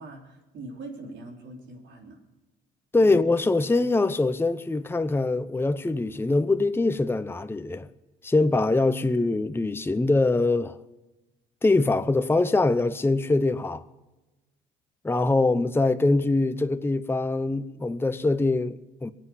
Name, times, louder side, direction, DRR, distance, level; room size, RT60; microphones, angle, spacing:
voice 1, 0.0-2.2 2.9-3.2, right 2 dB, 65° right, 3.9 m, -42 dB
voice 2, 2.9-7.9 8.2-10.8 11.6-13.8 15.0-19.1, left 2 dB, 10° left, 0.7 m, -23 dB
22.0 x 8.1 x 8.1 m
supercardioid pair, 70°, 20 cm